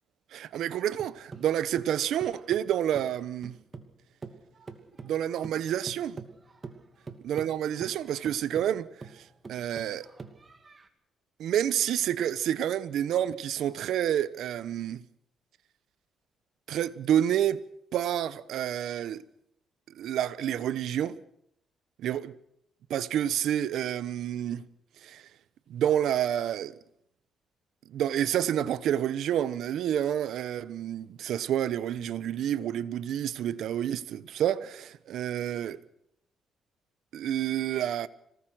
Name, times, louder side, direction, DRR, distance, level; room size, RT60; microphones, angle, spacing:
voice 1, 0.3-3.6 5.0-6.2 7.2-8.9 9.1-10.1 11.4-15.0 16.7-17.6 17.9-19.2 20.0-21.2 22.0-22.3 22.9-24.7 25.0-25.2 25.7-26.8 27.9-35.8 37.1-38.1, right 10 dB, 75° right, 1.0 m, -29 dB
sound 1, 0.5-4.0 4.2-10.9, right 4 dB, 30° right, 2.7 m, -45 dB
26.0 x 19.0 x 6.4 m
cardioid pair, 90°, 0 cm